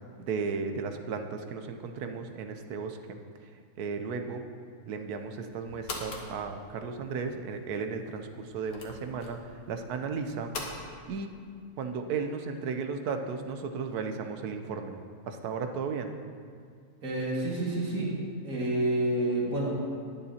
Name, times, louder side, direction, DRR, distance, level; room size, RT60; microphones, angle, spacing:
voice 1, 0.2-3.5 3.8-4.4 4.8-10.8 11.1-11.4 11.8-15.0 15.3-16.1, right 5 dB, 65° right, 6 dB, 1.1 m, -35 dB
sound 1, 5.1-10.7, left 3 dB, 75° left, 1.8 m, -44 dB
voice 2, 17.0-18.1 18.4-19.8, right 1 dB, 50° right, -5 dB, 2.4 m, -29 dB
20.0 x 7.1 x 2.8 m, 2.2 s
omnidirectional pair, 1.9 m